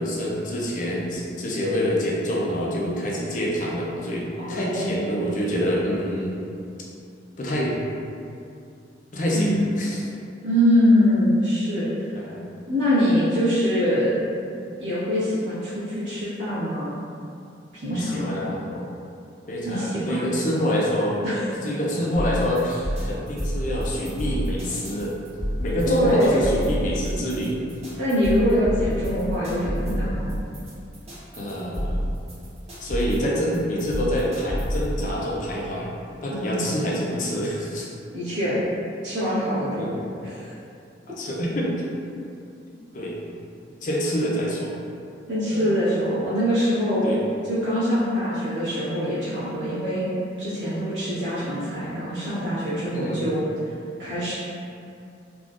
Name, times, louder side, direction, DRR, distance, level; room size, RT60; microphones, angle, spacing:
voice 1, 0.0-6.4 7.4-7.8 9.1-10.0 12.1-12.5 14.7-14.8 17.9-18.8 19.5-21.2 21.6-27.6 31.3-32.0 32.8-35.9 36.2-37.9 39.7-40.0 41.1-41.7 42.9-43.2 43.8-44.7 45.5-45.7 47.0-47.2 52.9-53.2, equal, 45° left, -4 dB, 0.5 m, -26 dB
voice 2, 4.4-5.2 9.3-9.7 10.4-11.9 12.7-14.1 14.8-16.9 17.8-18.3 19.6-20.3 21.2-21.4 25.8-26.6 28.0-30.3 36.3-36.7 38.1-38.6 39.0-39.9 40.2-40.5 45.3-47.0 47.5-50.1 50.4-53.4 54.0-54.3, equal, 75° right, -12 dB, 1.4 m, -24 dB
sound 1, 22.1-35.1, equal, 35° right, 1.0 m, -29 dB
3.6 x 2.4 x 2.4 m, 2.5 s
head